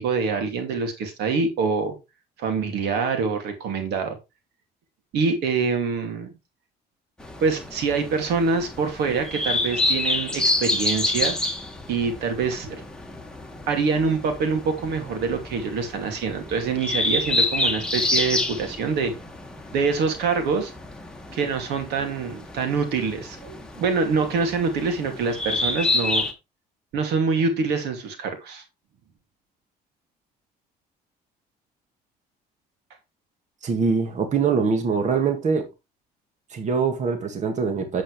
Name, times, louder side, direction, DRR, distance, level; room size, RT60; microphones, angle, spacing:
voice 1, 0.0-2.0 2.4-4.2 5.1-6.3 7.4-11.4 11.9-12.8 13.7-19.1 19.7-20.7 21.3-26.2 26.9-28.6, right 5 dB, 80° right, 2.6 m, -25 dB
sound 1, 7.2-26.3, left 2 dB, 5° left, 1.8 m, -28 dB
voice 2, 33.6-35.7 36.5-38.0, right 5 dB, 45° right, 1.9 m, -23 dB
8.6 x 7.8 x 3.3 m
cardioid pair, 110°, 17 cm